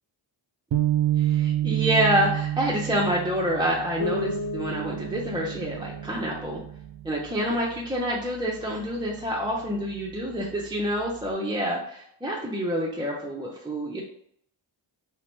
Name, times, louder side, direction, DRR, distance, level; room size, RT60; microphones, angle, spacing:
sound 1, 0.7-7.1, right 12 dB, 70° right, 0.5 m, -29 dB
voice 1, 1.2-6.6 7.0-14.0, equal, 10° right, -4 dB, 0.5 m, -27 dB
Bass guitar, 4.0-7.7, left 1 dB, 80° left, 0.9 m, -35 dB
2.9 x 2.1 x 2.9 m, 0.69 s
cardioid pair, 45°, 48 cm